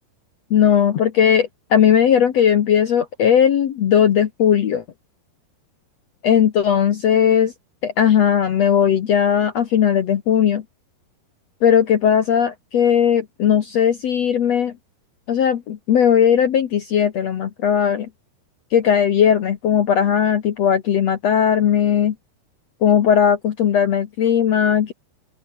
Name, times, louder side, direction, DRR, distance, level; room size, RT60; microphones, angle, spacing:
voice 1, 0.5-4.8 6.2-7.5 7.8-10.6 11.6-14.7 15.3-18.1 18.7-22.1 22.8-24.9, left 8 dB, 65° left, 1.7 m, -17 dB
open air
omnidirectional pair, 4.7 m